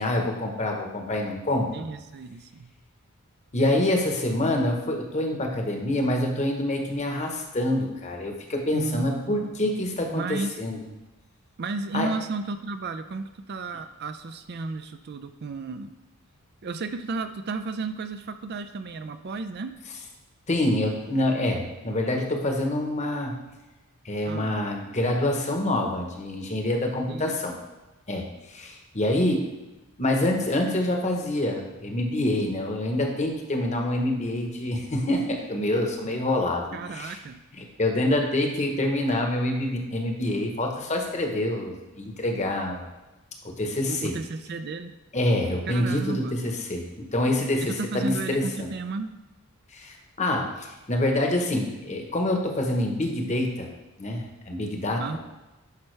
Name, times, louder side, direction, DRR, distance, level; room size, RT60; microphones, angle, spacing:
voice 1, 0.0-1.9 3.5-10.8 11.9-12.1 20.5-23.4 24.0-27.5 28.1-29.5 30.0-37.2 37.6-42.9 43.4-44.1 45.1-48.7 49.7-53.7 54.0-55.2, left 1 dB, 30° left, 2 dB, 1.0 m, -26 dB
voice 2, 1.7-2.7 8.7-9.6 10.1-10.6 11.6-15.9 16.6-19.7 24.3-24.6 27.1-27.4 36.7-37.4 43.9-45.0 45.7-46.4 47.6-49.1 55.0-55.2, right 3 dB, 45° right, 9 dB, 0.4 m, -33 dB
10.5 x 5.5 x 3.3 m, 1.0 s
head